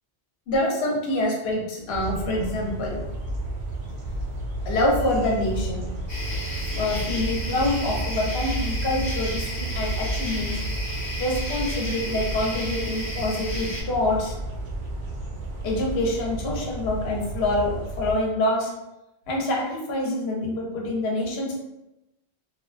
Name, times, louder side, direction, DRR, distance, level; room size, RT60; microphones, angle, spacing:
voice 1, 0.5-3.0 4.7-5.8 6.7-10.5 11.2-14.3 15.6-18.7 19.3-21.6, left 1 dB, 65° left, -2 dB, 0.9 m, -26 dB
sound 1, 1.9-18.1, right 1 dB, 60° right, 0.5 m, -32 dB
sound 2, 6.1-13.8, equal, 30° left, 0.6 m, -33 dB
2.4 x 2.2 x 2.4 m, 0.94 s
omnidirectional pair, 1.2 m